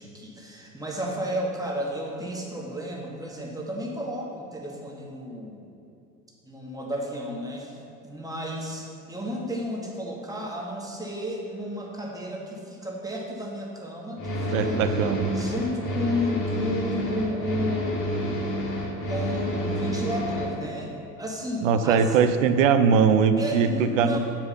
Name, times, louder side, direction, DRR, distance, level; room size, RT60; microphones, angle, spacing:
voice 1, 0.0-5.6 6.4-7.8 8.0-14.8 15.3-18.0 19.0-20.9 21.2-22.2 23.4-24.2, equal, 10° right, -2 dB, 1.5 m, -32 dB
sound 1, 14.2-20.5, equal, 40° left, 1.9 m, -29 dB
voice 2, 14.5-15.4 21.6-24.2, right 6 dB, 60° right, 9 dB, 0.7 m, -21 dB
8.6 x 4.7 x 5.6 m, 2.7 s
figure-of-eight pair, 70°, 45 cm